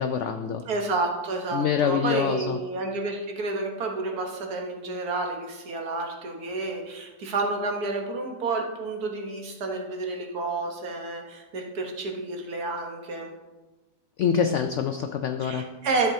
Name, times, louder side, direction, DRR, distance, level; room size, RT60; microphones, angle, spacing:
voice 1, 0.0-0.7 1.5-2.6 14.2-15.8, left 7 dB, 85° left, 7 dB, 0.6 m, -26 dB
voice 2, 0.7-13.3 15.4-16.1, right 3 dB, 65° right, 2 dB, 1.6 m, -30 dB
13.0 x 8.0 x 2.7 m, 1.2 s
omnidirectional pair, 1.8 m